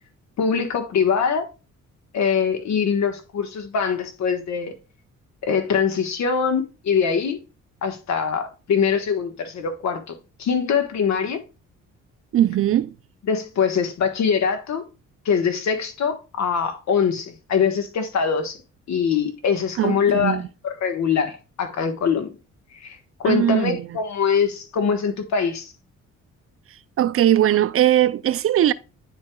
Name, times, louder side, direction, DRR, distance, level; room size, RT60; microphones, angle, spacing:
voice 1, 0.4-1.5 2.1-4.7 5.4-7.4 7.8-11.4 13.3-14.8 15.2-18.6 18.9-22.3 22.7-25.7, left 6 dB, 65° left, 1.4 m, -23 dB
voice 2, 12.3-12.9 19.8-20.5 23.3-23.9 27.0-28.7, right 12 dB, 50° right, 0.4 m, -19 dB
9.5 x 4.5 x 2.3 m
cardioid pair, 90°, 30 cm